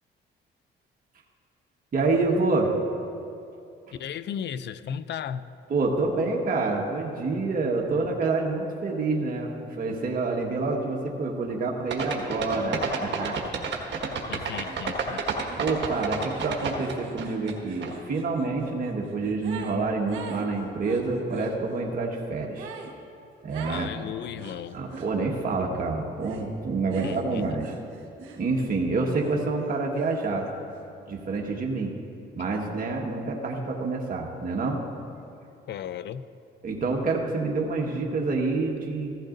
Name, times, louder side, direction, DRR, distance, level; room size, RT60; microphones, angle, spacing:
voice 1, 1.9-2.7 5.7-9.5 9.8-13.4 15.6-22.7 23.4-23.9 24.7-27.7 28.4-30.5 31.1-31.9 32.4-34.8 36.6-39.2, right 3 dB, 45° right, 1.5 m, -27 dB
voice 2, 4.0-5.4 14.3-15.2 23.7-24.8 27.0-27.4 35.7-36.2, left 9 dB, 60° left, 0.5 m, -35 dB
sound 1, 11.9-17.5 17.8-17.9, right 5 dB, 60° right, 1.5 m, -29 dB
sound 2, 14.6-14.8 15.1-19.8 20.1-21.5 22.5-22.9 23.5-23.9 24.4-25.1 26.2-26.5 26.9-28.8 29.1-30.5, right 6 dB, 90° right, 1.2 m, -44 dB
15.5 x 14.5 x 2.6 m
cardioid pair, 90°, 20 cm